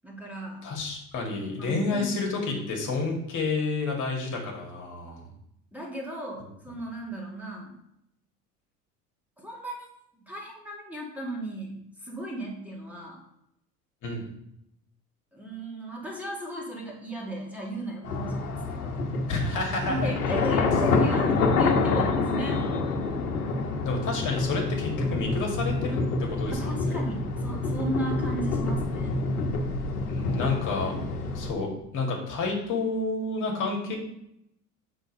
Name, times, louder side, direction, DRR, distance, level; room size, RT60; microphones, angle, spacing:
voice 1, 0.0-0.7 1.6-2.6 5.7-7.8 9.4-9.9 10.1-13.2 15.3-19.1 19.9-22.7 26.5-29.2, right 1 dB, 5° right, -2 dB, 2.2 m, -36 dB
voice 2, 0.6-5.2 14.0-14.3 19.3-20.0 23.8-26.0 26.3-27.0 30.1-30.9 31.3-31.7 31.9-34.0, left 3 dB, 40° left, 0 dB, 2.2 m, -30 dB
sound 1, 18.0-31.5, left 3 dB, 75° left, 1.2 m, -27 dB
7.9 x 4.0 x 5.6 m, 0.77 s
figure-of-eight pair, 70°, 45 cm